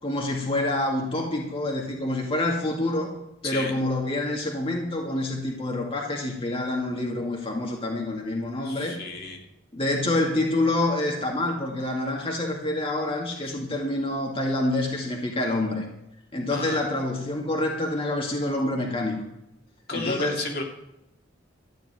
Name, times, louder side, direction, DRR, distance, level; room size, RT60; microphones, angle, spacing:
voice 1, 0.0-3.1 3.4-9.0 9.7-15.8 16.3-19.1 19.9-20.4, left 2 dB, 30° left, 0 dB, 2.1 m, -27 dB
voice 2, 8.6-9.4 13.4-13.5 16.5-16.8 19.9-20.6, left 3 dB, 55° left, 2 dB, 2.4 m, -32 dB
13.5 x 6.9 x 9.4 m, 0.83 s
head